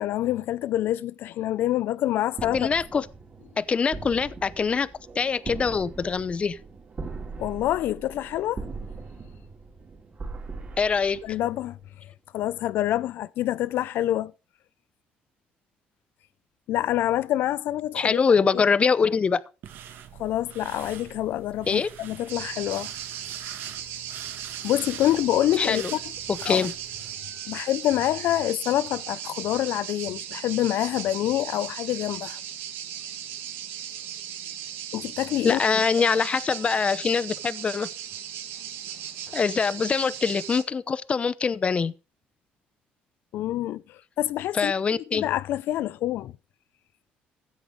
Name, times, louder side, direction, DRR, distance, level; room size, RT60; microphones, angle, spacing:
voice 1, 0.0-2.7 7.4-8.6 11.2-11.8 12.3-14.3 16.7-18.6 20.2-22.9 24.6-26.0 26.4-26.7 27.5-32.4 34.9-35.8 43.3-46.3, left 13 dB, 75° left, 0.5 m, -27 dB
sound 1, 2.3-11.8, right 4 dB, 35° right, 3.8 m, -40 dB
voice 2, 2.5-3.1 3.6-4.9 5.1-6.6 10.8-11.2 18.0-19.4 21.7-21.9 25.6-25.9 26.3-26.7 35.4-37.9 39.3-41.9 44.5-45.2, left 5 dB, 30° left, 0.8 m, -24 dB
sound 2, 19.6-27.1, right 9 dB, 70° right, 1.7 m, -44 dB
sound 3, 22.3-40.6, right 10 dB, 85° right, 1.9 m, -37 dB
15.0 x 8.0 x 5.1 m
cardioid pair, 105°, 4 cm